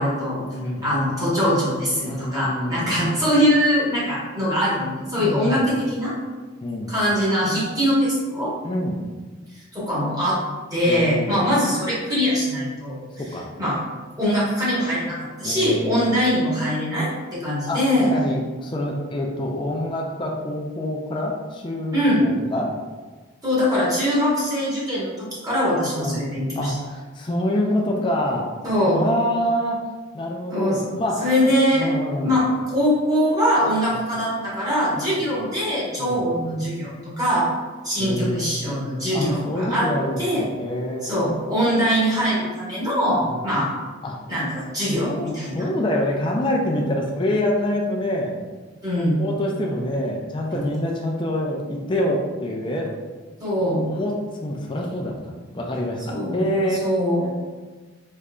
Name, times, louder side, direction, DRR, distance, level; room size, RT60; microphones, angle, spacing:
voice 1, 0.0-0.4 0.8-6.1 6.9-8.5 9.7-10.4 10.7-13.1 13.6-13.8 14.2-18.1 21.9-22.2 23.4-26.7 28.6-29.0 30.5-30.9 31.2-31.9 32.2-37.5 37.8-39.9 40.2-40.4 41.0-43.7 44.3-45.7 48.8-49.2 53.4-53.9 56.1-57.3, equal, 20° right, -8 dB, 1.1 m, -22 dB
voice 2, 0.5-0.9 2.0-3.0 5.2-5.7 6.6-6.9 8.6-9.0 10.9-11.4 13.2-13.5 15.4-16.0 17.7-17.8 18.1-22.7 26.0-26.3 26.6-28.5 28.8-29.8 30.1-31.3 31.7-32.4 34.9-35.3 36.0-36.3 38.0-41.2 43.2-43.4 44.0-44.2 45.0-48.3 49.0-52.9 53.6-56.9, left 1 dB, 25° left, -1 dB, 0.4 m, -26 dB
3.6 x 3.1 x 2.2 m, 1.3 s
head